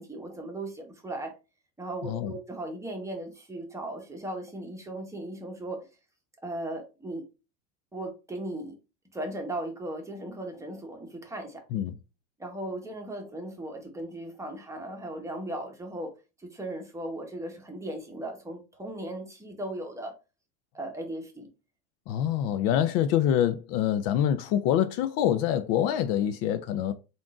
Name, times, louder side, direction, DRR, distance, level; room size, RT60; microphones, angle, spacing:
voice 1, 0.0-1.3 1.8-5.8 6.4-7.2 7.9-8.7 9.1-11.6 12.4-16.1 16.4-20.1 20.7-21.5, right 1 dB, 10° right, 1.0 m, -37 dB
voice 2, 2.0-2.3 11.7-11.9 22.1-26.9, left 10 dB, 55° left, 0.4 m, -25 dB
3.6 x 2.6 x 3.6 m
supercardioid pair, 120°, 36 cm